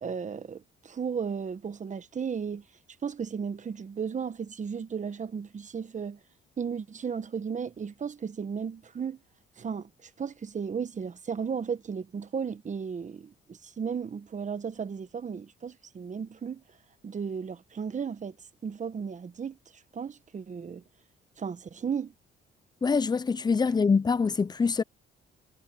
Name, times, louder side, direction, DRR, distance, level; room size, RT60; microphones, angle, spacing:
voice 1, 0.0-2.6 3.0-6.2 6.6-9.2 9.6-16.6 17.0-18.3 18.6-19.6 19.9-20.8 21.4-22.1, right 6 dB, 40° right, 1.2 m, -35 dB
voice 2, 22.8-24.8, left 5 dB, 20° left, 0.5 m, -24 dB
cardioid pair, 90°, 20 cm